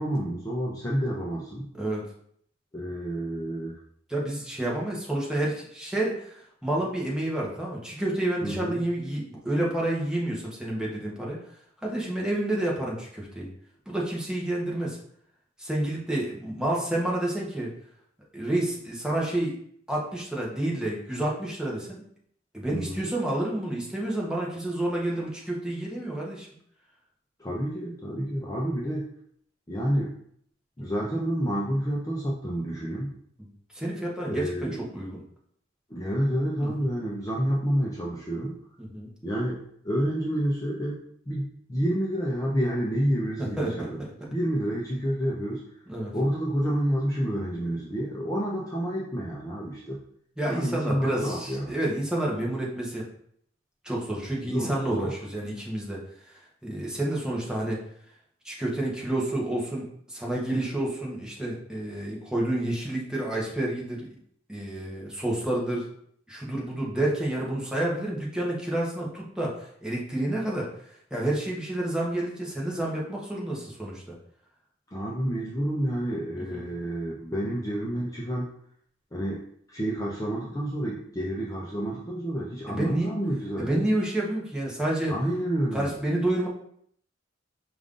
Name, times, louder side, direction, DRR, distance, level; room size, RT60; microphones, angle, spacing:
voice 1, 0.0-1.7 2.7-3.8 8.4-8.8 22.7-23.1 27.4-29.1 29.7-30.1 30.8-33.1 34.3-34.8 35.9-38.6 39.2-41.0 41.3-44.0 44.3-45.6 46.1-50.0 50.4-51.7 54.4-55.1 74.9-78.5 79.1-79.4 79.7-83.9 85.1-86.0, equal, 15° left, -4 dB, 0.6 m, -29 dB
voice 2, 4.1-11.4 11.8-13.5 13.9-15.0 15.6-17.7 18.3-19.5 19.9-22.0 22.5-26.5 30.8-31.0 33.7-35.2 36.6-36.9 38.8-39.1 43.4-44.1 45.9-46.1 50.4-53.1 53.8-56.0 56.3-57.8 58.4-64.1 64.5-65.9 66.3-70.7 71.1-74.1 76.3-76.6 82.7-83.1 83.6-85.1 85.7-86.5, right 1 dB, 5° right, -4 dB, 1.0 m, -29 dB
5.1 x 2.5 x 3.7 m, 0.65 s
head